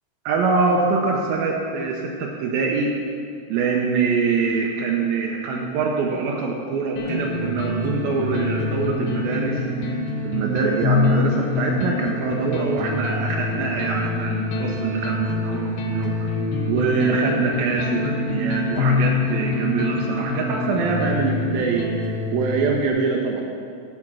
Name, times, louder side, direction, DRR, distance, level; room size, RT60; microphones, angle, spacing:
voice 1, 0.3-2.9 3.5-10.0 10.2-16.3 16.7-23.4, right 4 dB, 80° right, 0 dB, 2.1 m, -24 dB
sound 1, 7.0-22.9, left 3 dB, 70° left, 2.4 m, -25 dB
14.5 x 5.4 x 6.1 m, 2.3 s
omnidirectional pair, 5.2 m